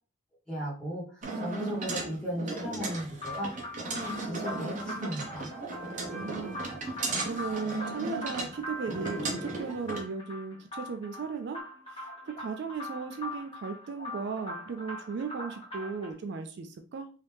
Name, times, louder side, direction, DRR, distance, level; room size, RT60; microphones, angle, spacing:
voice 1, 0.5-3.5 3.8-5.5, equal, 5° left, -6 dB, 1.5 m, -36 dB
sound 1, 1.2-10.0, right 3 dB, 40° right, 0.8 m, -36 dB
sound 2, 3.2-16.1, left 1 dB, 30° left, 1.2 m, -42 dB
voice 2, 6.1-6.7 7.2-11.6 11.9-17.1, right 5 dB, 60° right, 7 dB, 0.3 m, -36 dB
sound 3, 6.3-9.2 9.5-9.7 10.3-10.8, equal, 75° right, 0.9 m, -52 dB
3.1 x 2.7 x 3.3 m, 0.40 s
head